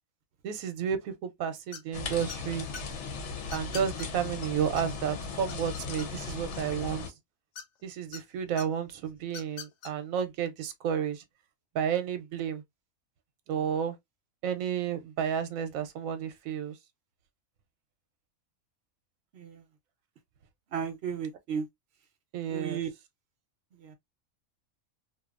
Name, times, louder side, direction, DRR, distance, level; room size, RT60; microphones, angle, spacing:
voice 1, 0.4-2.7 3.5-7.0 7.8-11.2 11.7-12.6 13.5-13.9 14.4-16.7 22.3-22.8, right 8 dB, 90° right, 1.0 m, -31 dB
sound 1, 1.7-2.0 2.3-2.8 3.5-4.1 4.4-4.5 4.8-4.9 5.2-6.4 7.5-8.2 8.6-8.7 9.3-9.9, left 6 dB, 90° left, 1.1 m, -42 dB
sound 2, 1.9-7.1, left 5 dB, 65° left, 0.9 m, -37 dB
voice 2, 20.7-21.7 22.5-22.9 23.8-23.9, right 7 dB, 60° right, 0.8 m, -34 dB
2.7 x 2.3 x 2.3 m
omnidirectional pair, 1.4 m